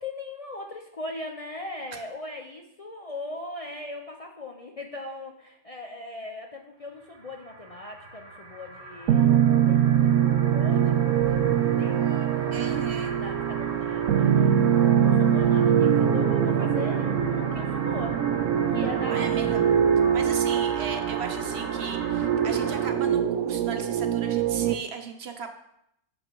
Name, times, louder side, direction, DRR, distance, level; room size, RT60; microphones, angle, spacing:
voice 1, 0.0-10.0 10.5-18.2 18.7-19.5 20.2-20.3, left 2 dB, 40° left, 2 dB, 0.6 m, -40 dB
sound 1, 6.9-22.9, right 2 dB, 35° right, 1.1 m, -40 dB
sound 2, 9.1-24.7, right 9 dB, 80° right, 1.0 m, -23 dB
voice 2, 12.5-13.1 19.1-19.7 20.1-25.5, right 6 dB, 60° right, 6 dB, 1.0 m, -36 dB
7.0 x 6.0 x 5.2 m, 0.77 s
omnidirectional pair, 1.3 m